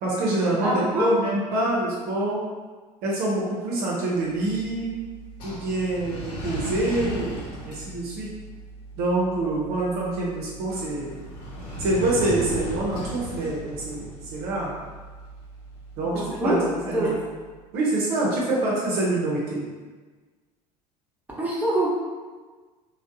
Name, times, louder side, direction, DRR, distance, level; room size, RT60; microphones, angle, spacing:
voice 1, 0.0-2.4 3.0-5.0 5.4-8.3 9.0-11.2 11.8-14.7 16.0-16.6 16.8-17.1 17.7-19.6, right 2 dB, 50° right, -4 dB, 0.6 m, -26 dB
voice 2, 0.6-1.2 16.1-17.1 21.4-22.0, right 1 dB, 5° right, -6 dB, 0.9 m, -24 dB
sound 1, 4.3-17.4, right 1 dB, 60° left, 0.8 m, -38 dB
3.3 x 2.1 x 2.6 m, 1.4 s
figure-of-eight pair, 70°, 21 cm